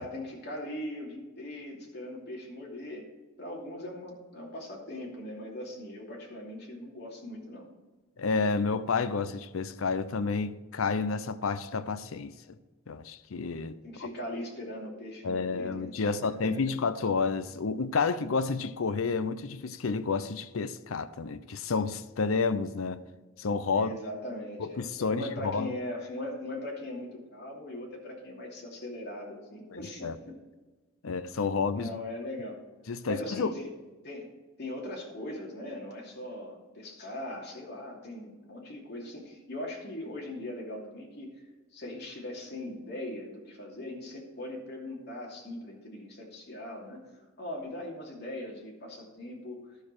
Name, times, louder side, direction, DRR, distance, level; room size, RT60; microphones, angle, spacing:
voice 1, 0.0-3.1 3.4-7.7 13.8-16.1 16.4-16.5 23.7-30.3 31.0-31.2 31.7-32.6 33.1-33.7 34.0-34.3 34.6-41.4 41.7-49.7, left 1 dB, 55° left, 2.7 m, -40 dB
voice 2, 8.2-12.3 12.9-13.8 15.2-23.0 23.4-23.9 24.6-25.7 30.0-30.2 31.0-31.9 32.9-33.5, left 4 dB, 85° left, 0.6 m, -30 dB
12.0 x 6.5 x 4.7 m
head